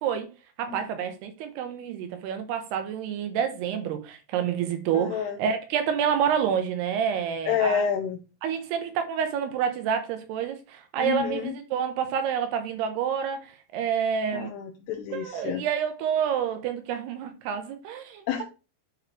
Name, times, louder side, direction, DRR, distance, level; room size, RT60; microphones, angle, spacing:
voice 1, 0.6-7.8 8.4-14.5 15.1-18.4, right 8 dB, 85° right, 3.1 m, -28 dB
voice 2, 4.9-5.4 7.5-8.2 11.0-11.5 14.3-15.6 18.3-18.4, left 8 dB, 85° left, 2.7 m, -28 dB
9.5 x 4.2 x 3.1 m
omnidirectional pair, 4.7 m